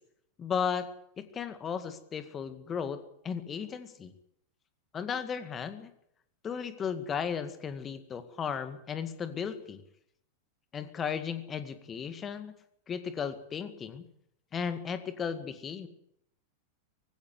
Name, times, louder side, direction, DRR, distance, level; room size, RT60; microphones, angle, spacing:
voice 1, 0.4-0.9 1.2-4.1 4.9-5.9 6.4-9.8 10.7-12.5 12.9-14.0 14.5-15.9, left 7 dB, 25° left, 10 dB, 2.0 m, -35 dB
20.0 x 16.0 x 8.2 m, 0.75 s
figure-of-eight pair, 90°, 0 cm